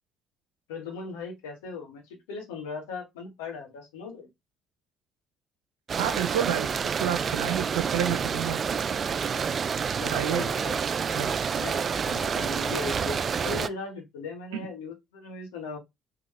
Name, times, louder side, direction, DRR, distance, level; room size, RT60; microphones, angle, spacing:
voice 1, 0.7-2.0 2.3-4.3 10.0-10.8 11.6-15.8, left 4 dB, 85° left, 1.1 m, -38 dB
sound 1, 5.9-13.7, right 6 dB, 45° right, 0.3 m, -28 dB
voice 2, 6.0-6.7 7.0-8.6 10.0-10.5 11.1-11.3 14.5-14.6, right 10 dB, 85° right, 0.6 m, -29 dB
4.0 x 3.0 x 3.1 m
hypercardioid pair, 55°, 0 cm